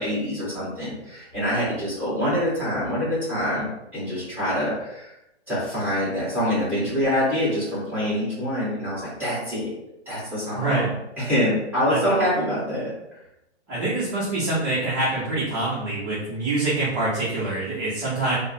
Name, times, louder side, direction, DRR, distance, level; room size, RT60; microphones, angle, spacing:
voice 1, 0.0-5.1 5.5-9.7 10.0-10.9 11.2-12.9, equal, 5° right, -10 dB, 1.4 m, -25 dB
voice 2, 10.5-10.9 11.9-12.0 13.7-18.4, right 2 dB, 25° right, -9 dB, 0.8 m, -25 dB
3.4 x 2.1 x 2.7 m, 0.88 s
hypercardioid pair, 140°, 34 cm